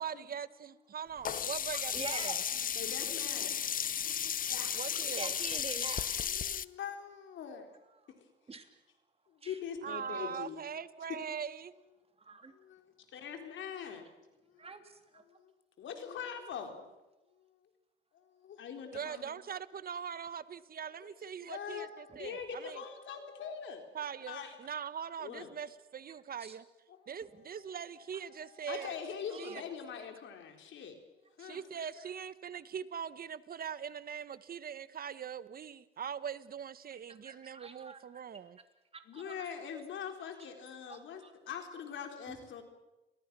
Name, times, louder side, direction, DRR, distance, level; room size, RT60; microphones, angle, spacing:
voice 1, 0.0-2.4 4.7-5.4 9.8-11.7 18.9-22.8 23.9-26.6 27.1-28.9 29.4-29.6 31.4-38.6, right 7 dB, 50° right, 15 dB, 1.2 m, -42 dB
Sink (filling or washing), 1.3-6.7, left 8 dB, 45° left, 0.7 m, -34 dB
voice 2, 1.9-2.4 5.2-6.3 8.5-8.7 9.4-9.6 12.2-12.5 14.6-15.2 24.0-24.1 26.4-26.6 29.3-29.6 37.2-38.0 38.9-39.3 40.9-41.3 42.3-42.4, right 4 dB, 30° right, 6 dB, 3.2 m, -45 dB
voice 3, 2.8-3.6 4.4-4.8 6.2-7.7 9.3-10.6 12.5-14.1 14.5-14.7 15.1-15.5 15.8-16.9 18.1-19.4 21.5-21.9 22.2-23.8 24.3-24.5 25.2-25.5 28.7-31.0 31.4-31.6 32.0-32.1 39.1-42.6, left 7 dB, 70° left, 5 dB, 3.9 m, -43 dB
30.0 x 22.5 x 6.2 m, 1.0 s
cardioid pair, 90°, 20 cm